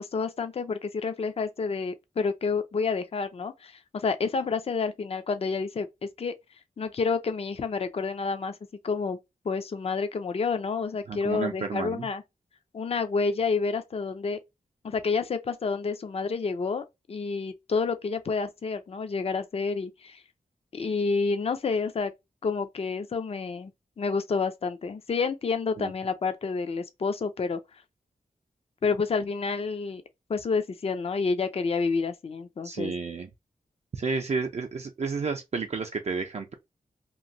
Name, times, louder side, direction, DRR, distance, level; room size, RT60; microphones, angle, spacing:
voice 1, 0.0-6.3 6.8-8.6 8.8-9.2 9.4-12.2 12.7-14.4 14.8-20.2 20.7-22.1 22.4-23.7 24.0-27.6 28.8-30.0 30.3-32.9, left 4 dB, 40° left, 0.4 m, -29 dB
voice 2, 11.1-12.1 25.8-25.9 32.6-33.3 33.9-36.5, right 4 dB, 45° right, 0.4 m, -31 dB
2.9 x 2.6 x 2.6 m
wide cardioid pair, 120°, 15 cm